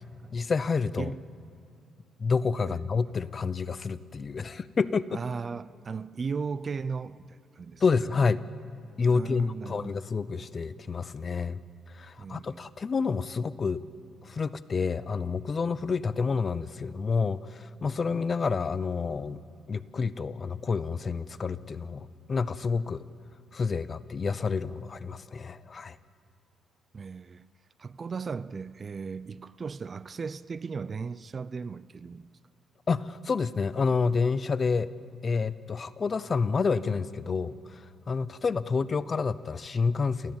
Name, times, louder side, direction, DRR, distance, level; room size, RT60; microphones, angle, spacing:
voice 1, 0.3-1.1 2.2-5.2 7.8-8.4 9.0-11.6 11.9-13.8 14.2-19.4 19.7-23.0 23.5-26.0 32.9-34.9 35.2-40.4, left 5 dB, 40° left, 0.7 m, -29 dB
voice 2, 5.1-7.8 9.1-10.0 12.2-12.7 26.9-27.5 27.8-32.4, right 5 dB, 40° right, 0.5 m, -36 dB
28.5 x 15.5 x 7.2 m
cardioid pair, 90°, 0 cm